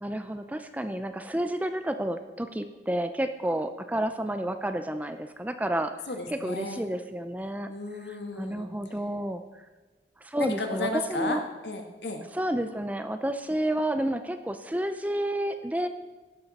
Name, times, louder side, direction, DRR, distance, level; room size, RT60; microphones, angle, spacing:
voice 1, 0.0-5.9 6.3-7.7 8.4-9.4 10.2-11.4 12.3-15.9, right 1 dB, 10° right, 8 dB, 0.5 m, -30 dB
voice 2, 6.1-6.8 7.7-8.7 10.4-12.2, left 2 dB, 75° left, 4 dB, 1.7 m, -34 dB
16.0 x 12.0 x 4.2 m, 1.2 s
head